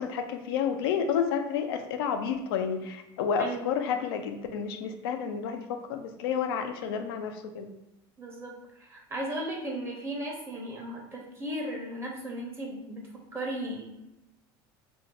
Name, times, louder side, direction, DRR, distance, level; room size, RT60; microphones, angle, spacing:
voice 1, 0.0-7.7, left 7 dB, 85° left, 6 dB, 0.5 m, -30 dB
voice 2, 3.4-3.7 8.2-13.8, right 1 dB, 20° right, -1 dB, 0.9 m, -36 dB
2.7 x 2.2 x 3.8 m, 0.92 s
supercardioid pair, 100°, 12 cm